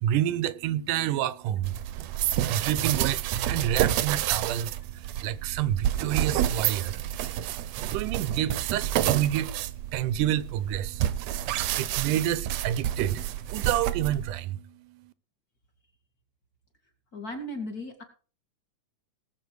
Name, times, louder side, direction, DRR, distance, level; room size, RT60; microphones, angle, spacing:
voice 1, 0.0-1.8 2.5-4.7 5.2-7.0 7.7-9.5 9.9-11.0 11.8-13.2 13.5-14.6, right 12 dB, 90° right, 2.3 m, -28 dB
sound 1, 1.6-14.4, right 12 dB, 70° right, 1.8 m, -29 dB
voice 2, 17.1-18.0, left 1 dB, 30° left, 2.4 m, -36 dB
19.0 x 8.1 x 4.7 m
omnidirectional pair, 3.6 m